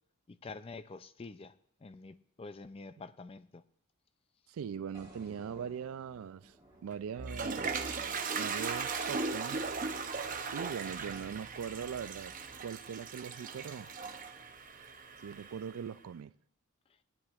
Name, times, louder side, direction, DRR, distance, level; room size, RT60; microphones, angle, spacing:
voice 1, 0.3-1.5 1.8-3.6, left 3 dB, 25° left, 0.4 m, -47 dB
voice 2, 4.5-6.5 6.8-9.6 10.5-12.3 12.6-13.9 15.2-16.3, right 7 dB, 70° right, 0.3 m, -41 dB
sound 1, 4.9-9.1, right 1 dB, 15° right, 1.6 m, -59 dB
Toilet flush, 6.9-15.8, right 4 dB, 35° right, 0.7 m, -38 dB
18.5 x 10.0 x 2.4 m
head